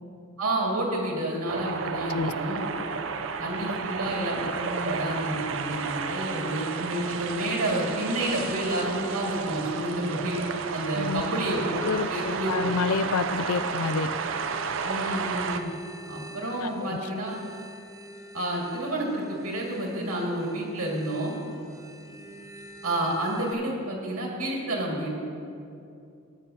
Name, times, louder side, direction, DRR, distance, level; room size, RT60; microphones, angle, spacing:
voice 1, 0.4-2.6 3.4-10.4 10.7-11.8 12.1-12.7 14.8-15.7 16.1-17.4 18.3-21.4 22.8-25.1, right 1 dB, 85° right, -2 dB, 2.1 m, -29 dB
sound 1, 1.5-15.6, right 5 dB, 60° right, 0.5 m, -32 dB
voice 2, 11.8-14.1 16.6-17.0, left 5 dB, 80° left, 13 dB, 0.4 m, -28 dB
sound 2, 14.2-23.5, right 1 dB, 15° right, 0.6 m, -47 dB
14.5 x 9.7 x 2.8 m, 2.6 s
head